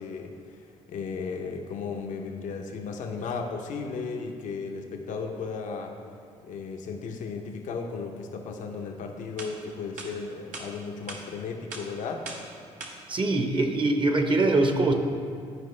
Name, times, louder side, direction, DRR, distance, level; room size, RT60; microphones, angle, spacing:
voice 1, 0.0-5.9 6.4-12.2, left 5 dB, 70° left, 2 dB, 0.7 m, -35 dB
sound 1, 9.4-9.5 10.0-10.1 10.5-10.7 11.1-11.2 11.7-11.8 12.2-12.4 12.8-12.9, right 3 dB, 75° right, 1.1 m, -38 dB
voice 2, 13.1-14.9, right 2 dB, 40° right, 5 dB, 1.0 m, -23 dB
11.5 x 4.8 x 3.2 m, 2.3 s
supercardioid pair, 60°, 13 cm